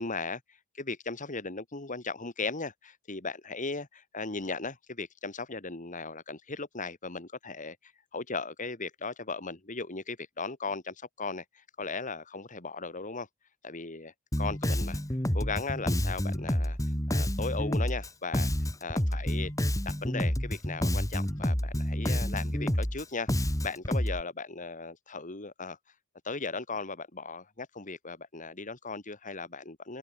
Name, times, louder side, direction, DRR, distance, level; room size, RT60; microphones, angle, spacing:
voice 1, 0.0-13.3 13.6-14.1 14.4-15.0 15.3-16.8 17.1-18.5 18.8-19.5 19.9-25.8 26.2-30.0, left 4 dB, 35° left, 2.2 m, -37 dB
Bass guitar, 14.3-24.2, equal, 15° left, 2.0 m, -29 dB
open air
head